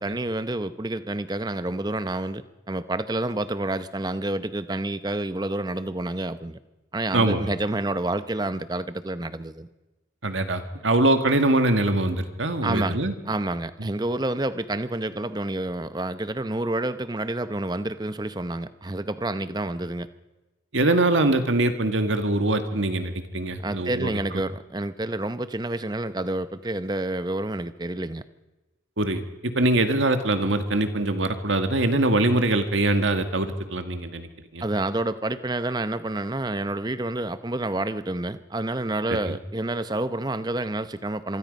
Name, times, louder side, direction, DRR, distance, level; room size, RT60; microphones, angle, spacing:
voice 1, 0.0-6.6 6.9-9.7 12.6-13.0 13.3-20.1 23.6-28.2 34.6-41.4, right 2 dB, 20° right, 13 dB, 0.7 m, -29 dB
voice 2, 7.1-7.5 10.2-13.1 13.8-13.9 20.7-24.1 29.0-34.6 39.1-39.3, right 2 dB, 75° right, 8 dB, 1.9 m, -23 dB
26.0 x 23.5 x 5.4 m, 1.1 s
head